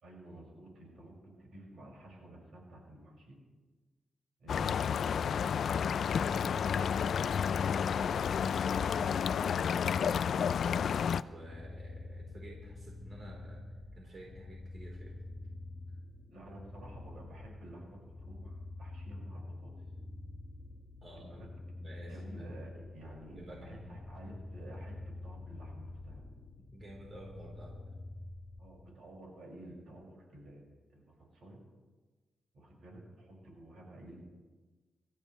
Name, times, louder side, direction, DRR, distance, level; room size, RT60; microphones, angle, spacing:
voice 1, 0.0-3.4 4.4-6.0 16.3-19.7 21.1-21.7 22.1-25.0 25.2-26.2 28.6-31.6 32.5-34.2, right 1 dB, 75° right, -2 dB, 5.8 m, -52 dB
sound 1, 4.5-11.2, left 7 dB, 70° left, 0.4 m, -30 dB
voice 2, 6.3-10.8 11.3-13.6 13.9-15.3 21.0-21.4 21.8-22.5 23.3-24.0 26.7-27.9, right 1 dB, 45° right, -2 dB, 3.9 m, -51 dB
sound 2, 11.3-28.8, left 2 dB, 35° left, 1.7 m, -47 dB
26.0 x 14.0 x 3.3 m, 1.3 s
cardioid pair, 105°, 0 cm